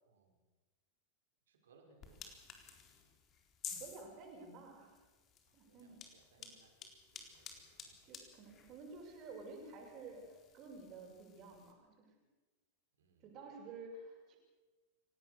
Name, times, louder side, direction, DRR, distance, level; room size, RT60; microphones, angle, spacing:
voice 1, 0.0-0.4 1.5-2.4 5.7-8.1 13.0-13.4, right 3 dB, 60° right, 3 dB, 5.7 m, -69 dB
sound 1, 2.0-11.7, left 7 dB, 30° left, 4.1 m, -54 dB
voice 2, 3.8-5.0 5.5-6.1 6.4-6.5 8.0-10.3 10.5-12.1 13.2-14.4, right 3 dB, 35° right, -1 dB, 7.1 m, -52 dB
29.5 x 18.0 x 6.8 m, 1.2 s
figure-of-eight pair, 90°, 0 cm